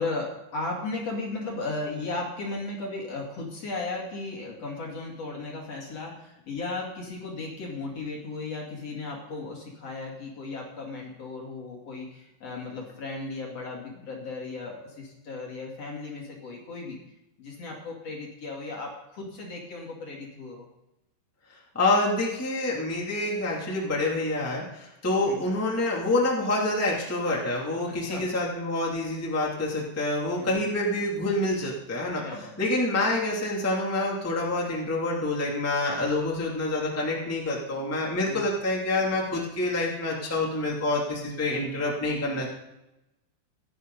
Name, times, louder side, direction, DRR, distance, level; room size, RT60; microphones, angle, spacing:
voice 1, 0.0-17.0 17.4-20.7 25.2-25.5 28.0-28.2 30.4-30.5 32.2-32.5 38.3-38.4, left 3 dB, 40° left, -1 dB, 2.5 m, -35 dB
voice 2, 21.7-32.2 32.6-42.5, left 2 dB, 20° left, -3 dB, 0.4 m, -27 dB
17.0 x 12.0 x 4.1 m, 0.92 s
omnidirectional pair, 5.9 m